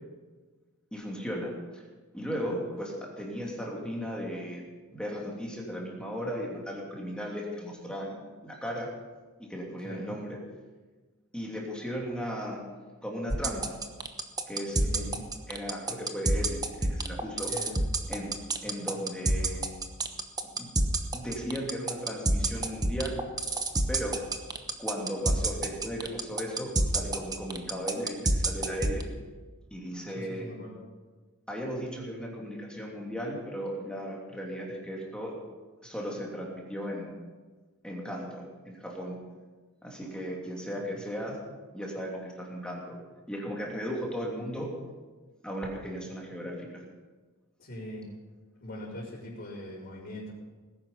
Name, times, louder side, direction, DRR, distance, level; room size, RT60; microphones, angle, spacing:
voice 1, 0.9-1.8 2.1-4.6 4.9-8.2 8.4-8.9 9.4-10.4 11.3-12.6 13.0-13.8 14.5-15.2 15.5-17.5 18.1-18.3 18.6-19.6 20.6-20.7 21.1-23.2 23.9-24.1 24.8-29.0 29.7-30.4 31.5-35.3 35.8-37.1 37.8-39.2 39.8-41.4 41.7-43.0 43.3-44.7 45.4-46.8, equal, 5° left, -2 dB, 2.9 m, -36 dB
voice 2, 9.8-10.2 14.8-15.2 17.5-17.8 18.6-18.8 30.1-30.8 40.8-41.0 47.6-48.1 48.6-50.3, left 1 dB, 50° left, -11 dB, 4.6 m, -42 dB
sound 1, 13.3-29.0, right 2 dB, 15° right, 1.0 m, -27 dB
19.0 x 11.0 x 5.6 m, 1.3 s
head